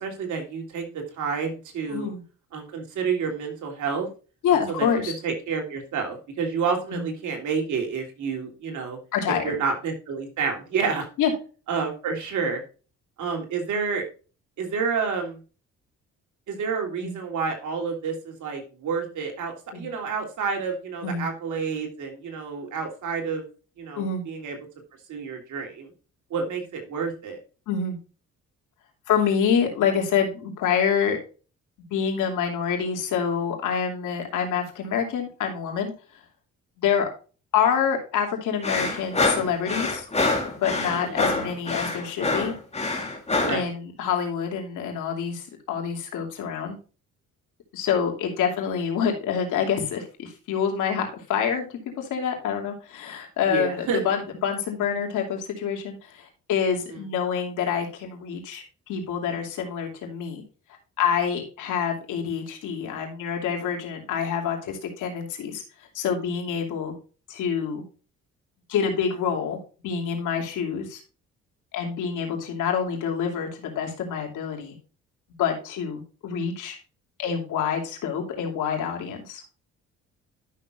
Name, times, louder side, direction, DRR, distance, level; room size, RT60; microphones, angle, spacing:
voice 1, 0.0-2.1 2.5-4.1 4.5-9.0 9.3-11.1 11.7-12.6 13.2-14.0 14.6-15.4 16.5-23.5 23.8-24.6 25.1-25.9 26.3-27.4 40.9-41.2 43.4-43.7 53.5-54.0 56.9-57.0, right 5 dB, 75° right, 2 dB, 3.1 m, -29 dB
voice 2, 1.9-2.2 4.4-5.1 6.9-7.1 9.1-9.5 11.2-11.3 17.0-17.2 19.7-19.9 21.0-21.3 24.0-24.2 27.7-28.0 29.1-31.2 31.9-35.9 36.8-37.1 37.5-40.0 40.6-42.5 43.5-46.8 47.7-60.4 61.0-65.6 65.9-66.9 67.3-67.8 68.7-69.6 69.8-71.0 71.7-74.7 75.4-76.8 77.2-79.4, left 7 dB, 85° left, 2 dB, 2.8 m, -27 dB
sound 1, 38.6-43.7, left 3 dB, 20° left, 2.5 m, -26 dB
12.0 x 6.4 x 2.5 m, 0.35 s
cardioid pair, 90°, 30 cm